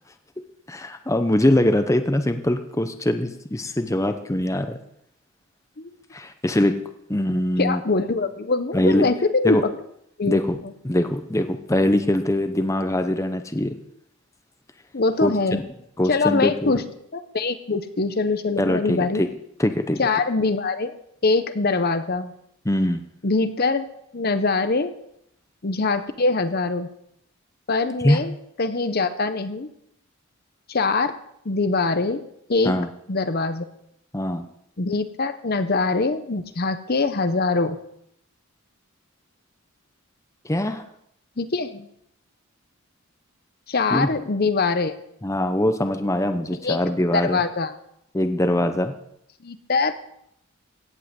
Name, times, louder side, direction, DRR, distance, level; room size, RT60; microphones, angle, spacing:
voice 1, 0.7-4.8 6.1-6.8 7.1-7.8 8.7-9.1 9.4-9.6 10.2-10.6 10.8-13.8 15.2-15.3 16.0-16.8 18.6-19.3 19.6-20.0 22.7-23.0 28.0-28.2 32.7-32.9 34.1-34.5 40.4-40.8 43.9-44.1 45.2-47.4 48.1-48.9, left 1 dB, 15° left, 7 dB, 0.7 m, -22 dB
voice 2, 7.6-9.6 10.2-10.4 14.9-15.6 16.1-16.8 17.1-19.2 20.0-21.0 21.2-22.3 23.2-23.9 24.1-25.0 25.6-26.9 27.7-28.3 28.6-29.7 30.7-31.1 31.4-32.2 32.5-32.8 33.1-33.7 34.8-37.8 41.4-41.9 43.7-45.0 46.6-46.8 47.1-47.7 49.4-49.9, left 3 dB, 45° left, 10 dB, 0.8 m, -23 dB
16.5 x 5.6 x 8.1 m, 0.74 s
head